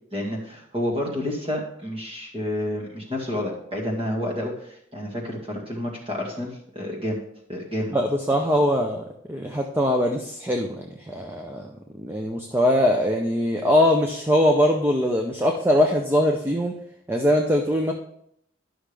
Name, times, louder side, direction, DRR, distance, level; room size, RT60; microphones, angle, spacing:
voice 1, 0.1-7.2 7.5-7.9, left 1 dB, 25° right, -1 dB, 2.0 m, -29 dB
voice 2, 7.9-11.7 12.0-16.7 17.1-17.9, left 1 dB, 10° right, 2 dB, 0.6 m, -22 dB
11.5 x 6.2 x 3.4 m, 0.71 s
head